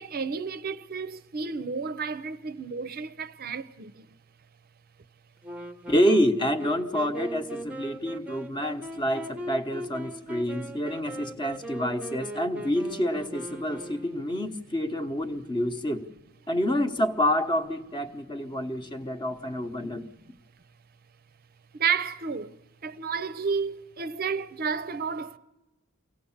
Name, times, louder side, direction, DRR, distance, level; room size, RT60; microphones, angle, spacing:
voice 1, 0.0-4.1 21.7-22.6 22.8-25.4, right 5 dB, 45° right, 0.6 m, -31 dB
Wind instrument woodwind instrument, 5.4-14.5, right 1 dB, 5° right, 0.8 m, -40 dB
voice 2, 5.9-16.1 16.5-20.1, equal, 20° left, 1.0 m, -28 dB
24.0 x 17.0 x 7.2 m
head